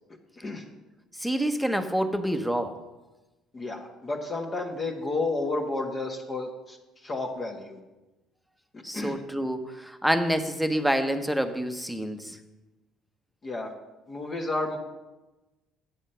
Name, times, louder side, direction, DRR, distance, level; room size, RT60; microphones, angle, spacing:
voice 1, 1.2-2.8 8.8-12.4, equal, ahead, 7 dB, 1.0 m, -27 dB
voice 2, 3.5-7.8 8.9-9.2 13.4-13.7 14.1-14.8, left 2 dB, 35° left, 0 dB, 1.5 m, -31 dB
8.7 x 7.3 x 5.6 m, 1.1 s
hypercardioid pair, 65°, 0 cm